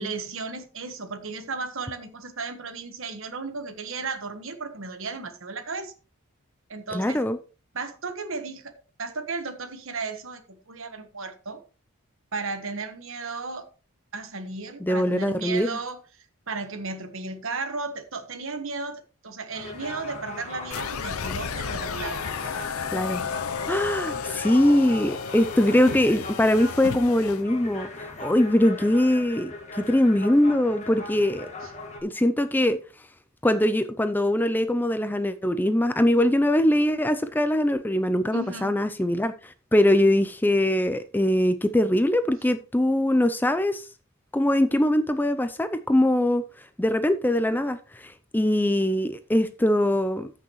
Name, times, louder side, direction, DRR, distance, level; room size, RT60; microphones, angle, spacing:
voice 1, 0.0-5.9 6.7-7.2 7.7-8.7 9.0-11.6 12.3-13.7 14.1-16.0 16.5-22.3 31.6-31.7 38.3-38.8, right 4 dB, 60° right, 1.3 m, -34 dB
voice 2, 6.9-7.4 14.8-15.7 22.9-23.2 23.7-31.5 32.0-32.8 33.4-43.9 44.3-50.3, left 1 dB, 10° left, 0.4 m, -22 dB
sound 1, 19.5-32.0, left 2 dB, 30° left, 1.8 m, -39 dB
sound 2, 20.7-27.4, left 6 dB, 75° left, 0.6 m, -33 dB
14.0 x 6.1 x 3.1 m
head